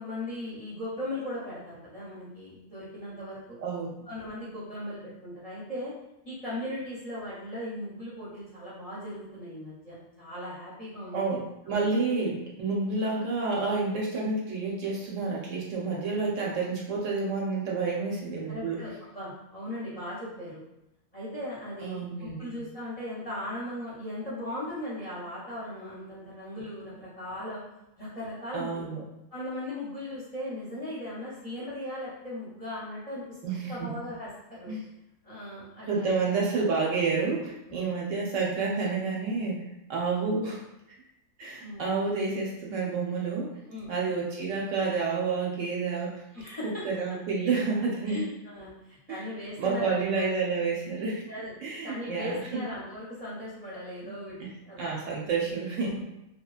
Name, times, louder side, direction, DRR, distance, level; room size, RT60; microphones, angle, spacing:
voice 1, 0.0-3.6 4.1-5.9 6.2-11.3 11.7-11.8 18.5-20.6 21.1-27.6 28.0-28.9 29.3-34.7 35.2-36.1 37.7-37.9 41.6-41.9 43.7-43.9 46.3-46.7 47.5-47.6 48.1-50.3 51.3-51.5 51.8-54.9 55.2-55.5 55.8-56.1, left 1 dB, 35° left, -9 dB, 0.6 m, -38 dB
voice 2, 3.6-3.9 11.1-18.8 21.8-22.5 28.5-29.0 33.4-33.9 34.7-34.8 35.8-39.6 39.9-40.6 41.4-43.5 43.9-46.2 46.8-48.3 49.1-49.2 49.6-51.2 51.6-52.6 54.0-54.1 54.8-56.0, right 4 dB, 70° right, -3 dB, 0.9 m, -29 dB
2.9 x 2.3 x 2.3 m, 0.90 s
omnidirectional pair, 1.5 m